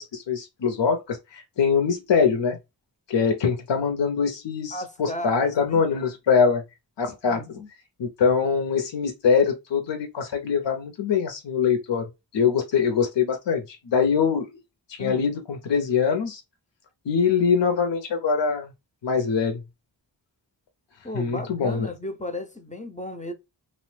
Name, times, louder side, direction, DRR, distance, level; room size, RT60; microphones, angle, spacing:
voice 1, 0.0-2.6 3.1-6.6 7.0-7.4 8.0-14.5 14.9-16.4 17.1-18.7 19.0-19.6 21.1-21.9, left 6 dB, 70° left, 0.6 m, -23 dB
voice 2, 4.7-5.8 7.2-7.7 15.0-15.3 21.0-23.3, left 1 dB, 20° left, 0.4 m, -35 dB
2.8 x 2.0 x 3.1 m
wide cardioid pair, 45°, 45 cm